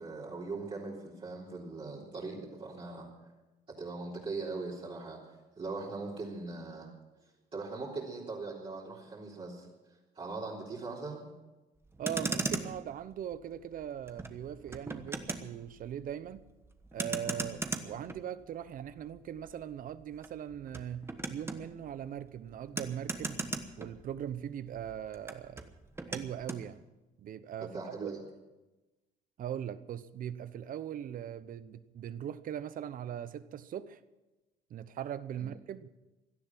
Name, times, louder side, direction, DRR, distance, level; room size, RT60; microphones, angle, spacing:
voice 1, 0.0-3.1 3.8-5.2 5.6-6.9 7.5-9.7 10.1-11.3 27.6-28.2 35.3-35.5, right 3 dB, 35° right, 3.5 m, -40 dB
Motor vehicle (road), 11.8-24.5 24.7-26.7, right 2 dB, 15° right, 1.2 m, -40 dB
voice 2, 12.0-16.4 16.9-23.4 23.8-25.7 26.1-26.8 27.2-27.7 28.0-28.1 29.4-34.0 34.7-35.9, right 10 dB, 55° right, 0.9 m, -40 dB
17.0 x 12.0 x 6.0 m
cardioid pair, 110°, 17 cm